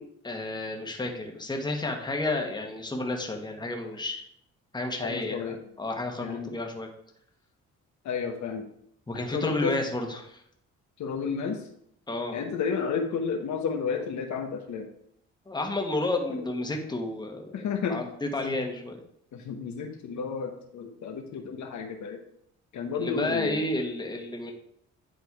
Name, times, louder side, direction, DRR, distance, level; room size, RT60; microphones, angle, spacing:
voice 1, 0.2-4.2 4.7-6.9 9.1-10.4 12.1-12.4 15.5-17.6 17.9-19.0 23.0-24.5, left 2 dB, 15° left, 2 dB, 1.3 m, -31 dB
voice 2, 5.0-5.6 6.2-6.6 8.0-8.7 9.3-9.8 11.0-11.7 12.3-14.9 16.3-16.5 17.5-18.0 18.4-18.6 19.3-22.2 22.7-23.7, left 6 dB, 70° left, 4 dB, 1.1 m, -32 dB
9.9 x 3.4 x 4.7 m, 0.71 s
cardioid pair, 90°, 30 cm